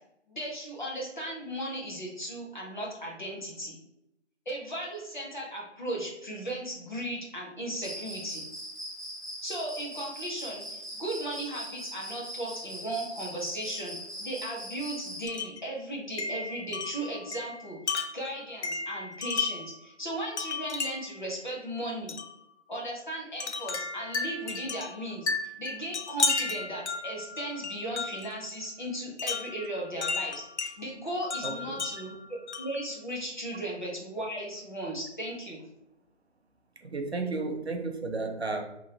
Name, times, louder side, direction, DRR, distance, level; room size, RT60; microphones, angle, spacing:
voice 1, 0.3-3.8 4.5-8.5 9.4-22.2 22.7-32.1 32.6-35.6, right 1 dB, 40° left, -3 dB, 0.9 m, -36 dB
Cricket, 7.8-15.3, equal, ahead, 0.4 m, -41 dB
Wind chime, 15.3-15.6 16.2-19.8 20.4-21.2 22.1-22.3 23.4-28.3 29.2-30.7 31.3-32.8, left 4 dB, 65° left, 0.5 m, -33 dB
voice 2, 31.4-31.8 36.8-38.6, right 3 dB, 60° right, 4 dB, 0.5 m, -33 dB
2.9 x 2.4 x 2.8 m, 0.83 s
figure-of-eight pair, 165°, 36 cm